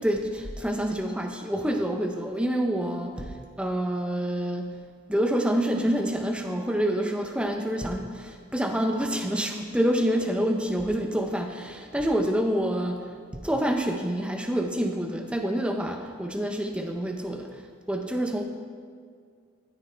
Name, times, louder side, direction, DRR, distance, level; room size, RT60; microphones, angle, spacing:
voice 1, 0.0-3.3 3.6-4.7 5.1-13.0 13.3-17.5 17.9-18.4, equal, 5° right, 4 dB, 0.6 m, -27 dB
13.5 x 9.8 x 3.3 m, 2.1 s
head